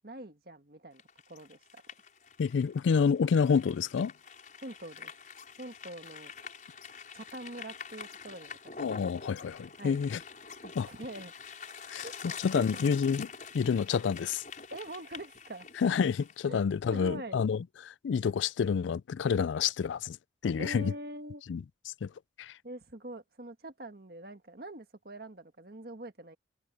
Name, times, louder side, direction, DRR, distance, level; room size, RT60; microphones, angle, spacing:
voice 1, 0.0-1.8 4.6-5.1 5.6-6.3 7.1-9.0 9.8-10.0 10.6-11.3 12.0-12.1 12.5-12.7 14.7-15.7 16.5-16.6 16.9-17.4 20.6-21.4 22.6-26.4, right 1 dB, 55° right, 1.8 m, -44 dB
sound 1, 1.0-16.4, left 6 dB, 45° left, 5.6 m, -47 dB
voice 2, 2.4-4.1 8.8-10.2 10.8-10.9 11.9-13.3 13.5-14.4 15.8-20.2 20.4-20.9 21.5-21.6 22.0-22.1 22.4-22.6, left 6 dB, 80° left, 0.4 m, -28 dB
head